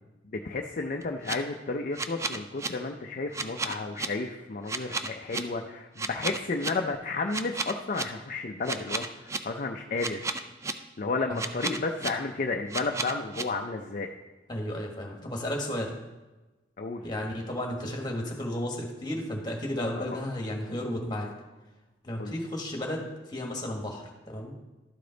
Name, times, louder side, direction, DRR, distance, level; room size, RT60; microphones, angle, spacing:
voice 1, 0.2-10.3 11.0-14.1 16.8-17.0 20.0-20.2 22.2-22.4, left 3 dB, 50° left, 2 dB, 0.5 m, -32 dB
sound 1, 1.0-1.3 2.0-2.7 3.3-4.1 4.7-5.4 6.0-6.7 7.3-8.0 8.7-9.4 10.0-10.7 11.4-12.1 12.7-13.4, right 3 dB, 15° right, 0.4 m, -32 dB
voice 2, 14.5-16.0 17.0-21.3 22.0-23.0 23.3-24.5, left 1 dB, 25° left, 0 dB, 1.5 m, -33 dB
12.0 x 5.1 x 3.9 m, 1.1 s
head